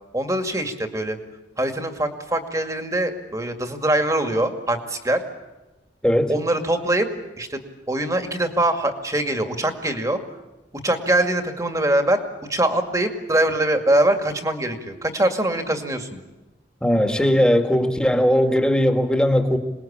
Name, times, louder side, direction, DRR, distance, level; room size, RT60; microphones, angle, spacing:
voice 1, 0.1-1.2 1.6-5.2 6.3-7.1 7.4-7.6 7.9-10.2 10.8-12.2 12.5-16.2, right 1 dB, 20° right, 6 dB, 2.2 m, -23 dB
voice 2, 6.0-6.4 16.8-19.6, equal, 5° left, 5 dB, 2.0 m, -19 dB
26.5 x 20.5 x 8.8 m, 1.1 s
head